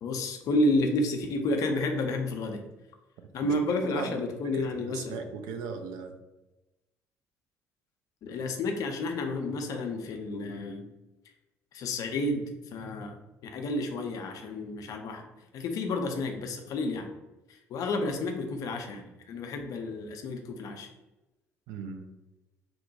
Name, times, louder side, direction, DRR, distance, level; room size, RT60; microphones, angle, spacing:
voice 1, 0.0-2.6 3.3-5.2 8.2-10.9 11.7-13.2 13.4-15.2 15.5-17.1 17.7-20.9, left 2 dB, 50° left, 4 dB, 0.4 m, -30 dB
voice 2, 3.4-4.3 4.5-6.2 21.7-22.0, right 5 dB, 60° right, 6 dB, 0.3 m, -38 dB
2.8 x 2.1 x 2.7 m, 1.0 s
figure-of-eight pair, 50°, 8 cm